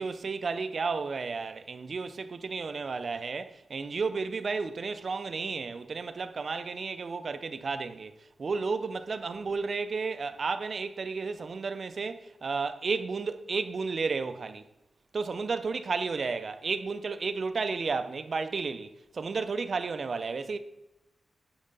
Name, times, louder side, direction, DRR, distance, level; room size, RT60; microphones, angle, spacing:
voice 1, 0.0-8.1 8.4-14.6 15.1-20.6, right 4 dB, 50° right, 0.4 m, -32 dB
5.4 x 4.8 x 5.1 m
wide cardioid pair, 145°, 0 cm